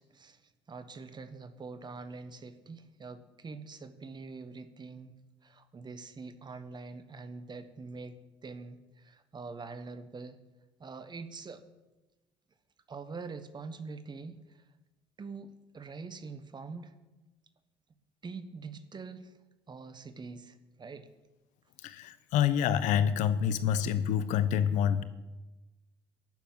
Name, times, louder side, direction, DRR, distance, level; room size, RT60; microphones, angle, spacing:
voice 1, 0.0-5.1 5.4-10.4 10.8-11.6 12.9-14.7 15.2-16.9 18.2-19.3 19.7-21.1, right 4 dB, 35° right, 11 dB, 1.4 m, -44 dB
voice 2, 21.8-25.0, left 9 dB, 70° left, 13 dB, 0.9 m, -27 dB
12.0 x 7.0 x 9.4 m, 1.1 s
hypercardioid pair, 65°, 13 cm